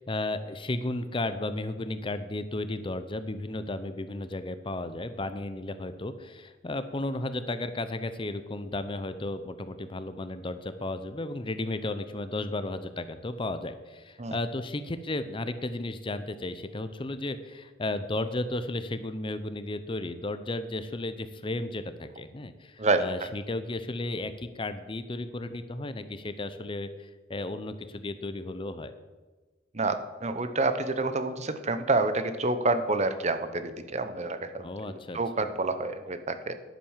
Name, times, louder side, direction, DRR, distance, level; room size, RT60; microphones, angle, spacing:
voice 1, 0.0-28.9 34.6-35.2, left 2 dB, 25° left, 11 dB, 0.6 m, -34 dB
voice 2, 29.7-36.5, right 3 dB, 35° right, 10 dB, 0.8 m, -28 dB
10.5 x 9.4 x 7.3 m, 1.3 s
head